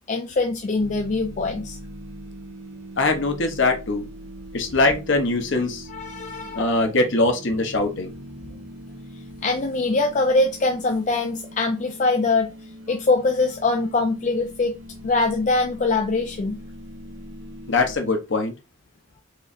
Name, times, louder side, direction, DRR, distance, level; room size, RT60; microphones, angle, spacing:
voice 1, 0.1-1.8 5.9-6.6 9.4-12.5 12.9-14.7 15.0-16.6, left 3 dB, 35° left, 0.4 m, -23 dB
sound 1, 0.8-18.0, equal, 60° right, 0.8 m, -41 dB
voice 2, 3.0-4.0 4.5-5.9 6.5-8.1 17.7-18.5, left 2 dB, 60° left, 0.9 m, -22 dB
4.6 x 3.1 x 2.5 m
head